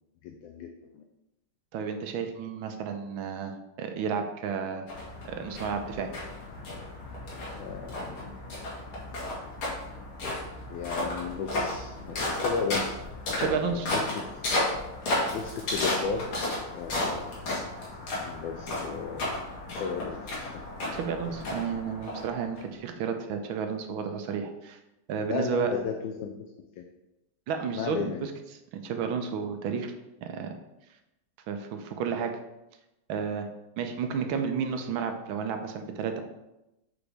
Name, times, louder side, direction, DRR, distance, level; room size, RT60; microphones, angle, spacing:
voice 1, 0.2-0.7 0.9-1.0 7.6-8.3 10.7-13.0 13.3-14.3 15.3-16.4 16.7-17.3 18.2-19.4 19.7-20.6 25.3-26.5 26.8-26.9 27.7-28.3, left 6 dB, 75° left, 4 dB, 1.3 m, -35 dB
voice 2, 1.7-4.9 5.2-6.1 13.4-13.9 20.9-24.8 25.1-25.7 27.5-28.3 28.7-29.9 30.2-30.6 31.5-32.3 33.1-33.5 33.8-36.2, right 6 dB, 80° right, 6 dB, 1.5 m, -32 dB
sound 1, 4.9-22.6, left 1 dB, 90° left, 2.6 m, -33 dB
7.0 x 5.0 x 3.4 m, 0.93 s
omnidirectional pair, 2.2 m